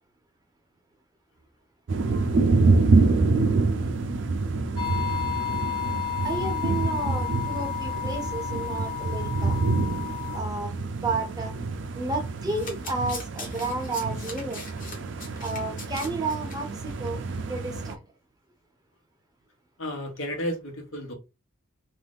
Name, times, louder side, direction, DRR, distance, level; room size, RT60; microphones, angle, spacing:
sound 1, 1.9-18.0, right 3 dB, 60° right, 0.4 m, -26 dB
sound 2, 4.8-10.4, left 9 dB, 20° left, 0.6 m, -32 dB
voice 1, 6.2-9.6 10.3-11.5 11.9-14.6 15.4-17.2 17.5-18.0, right 2 dB, 20° right, 0.6 m, -32 dB
Domestic sounds home sounds, 12.4-16.6 16.9-17.1 17.3-17.4, left 3 dB, 40° left, 0.9 m, -41 dB
voice 2, 19.8-21.1, equal, 70° left, 0.9 m, -32 dB
2.5 x 2.4 x 3.4 m
head